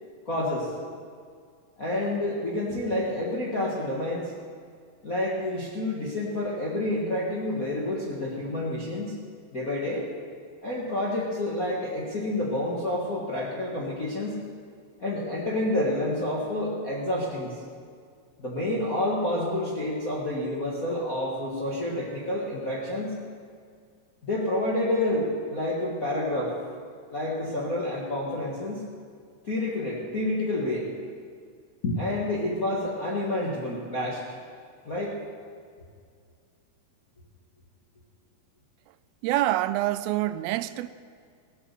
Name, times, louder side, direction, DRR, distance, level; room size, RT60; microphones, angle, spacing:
voice 1, 0.2-0.7 1.8-4.3 5.0-9.1 9.5-10.1 10.6-14.4 15.0-17.5 18.4-23.1 24.2-26.5 27.1-28.8 29.4-30.9 31.8-34.2 34.8-35.2, left 1 dB, 50° left, 1.0 m, -29 dB
voice 2, 39.2-40.9, right 14 dB, 90° right, 2.4 m, -26 dB
17.0 x 8.2 x 6.8 m
omnidirectional pair, 4.2 m